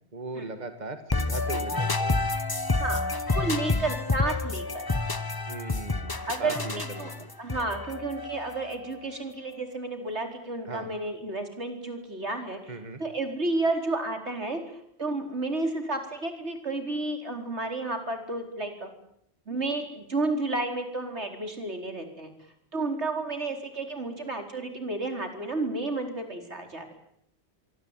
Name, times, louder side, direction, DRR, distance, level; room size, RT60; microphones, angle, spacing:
voice 1, 0.1-2.2 5.5-7.3 10.7-10.9 12.7-13.0, right 3 dB, 40° right, 8 dB, 2.2 m, -38 dB
sound 1, 1.1-8.9, left 3 dB, 20° left, 1.1 m, -29 dB
voice 2, 2.8-4.9 6.3-7.1 7.4-12.7 13.0-14.6 15.0-18.9 19.5-22.3 22.7-26.9, right 2 dB, 85° right, 5 dB, 4.7 m, -31 dB
25.5 x 24.0 x 9.1 m, 0.72 s
omnidirectional pair, 1.1 m